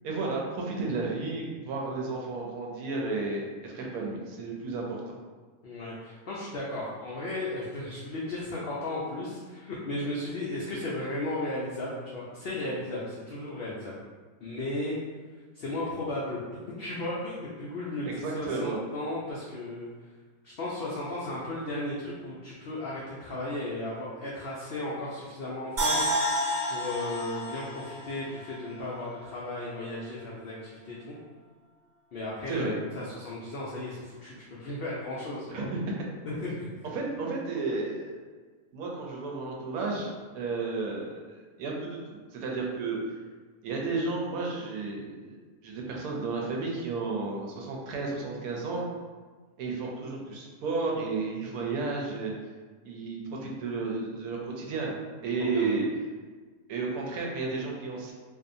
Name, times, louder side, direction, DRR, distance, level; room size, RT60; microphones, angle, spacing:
voice 1, 0.0-5.0 18.1-18.8 32.5-32.7 35.5-35.9 36.9-38.2 38.7-43.0 43.6-45.3 45.6-48.9 49.6-52.3 52.8-54.9 55.2-55.9 56.7-58.1, right 3 dB, 80° right, -2 dB, 1.0 m, -32 dB
voice 2, 5.6-13.9 14.4-15.0 15.5-20.1 20.4-31.2 32.1-35.7 36.2-36.8 55.4-55.7, left 1 dB, 85° left, -6 dB, 0.5 m, -35 dB
sound 1, 25.8-29.0 29.3-29.4, equal, 50° right, 0.5 m, -30 dB
2.6 x 2.3 x 2.6 m, 1.4 s
omnidirectional pair, 1.5 m